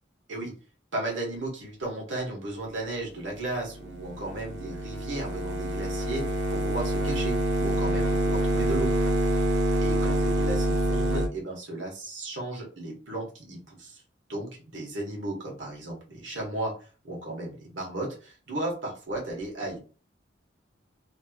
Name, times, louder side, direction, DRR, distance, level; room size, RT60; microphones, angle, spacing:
voice 1, 0.9-6.2 6.5-8.9 9.8-14.0 14.3-16.7 17.0-19.8, right 2 dB, 90° right, -1 dB, 1.5 m, -35 dB
sound 1, 3.6-11.3, right 1 dB, 70° right, 0.7 m, -26 dB
3.2 x 3.0 x 2.4 m, 0.37 s
head